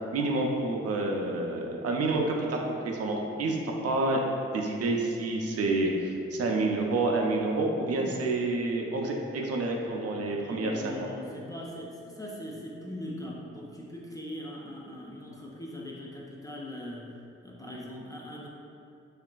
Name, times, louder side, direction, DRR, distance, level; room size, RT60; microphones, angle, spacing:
voice 1, 0.1-2.6 2.8-3.6 3.8-4.2 4.5-10.9, right 2 dB, 50° right, 0 dB, 0.4 m, -28 dB
voice 2, 7.9-8.2 10.3-17.1 17.4-18.5, left 1 dB, 10° left, -4 dB, 0.4 m, -41 dB
2.8 x 2.4 x 2.2 m, 2.5 s
hypercardioid pair, 45°, 32 cm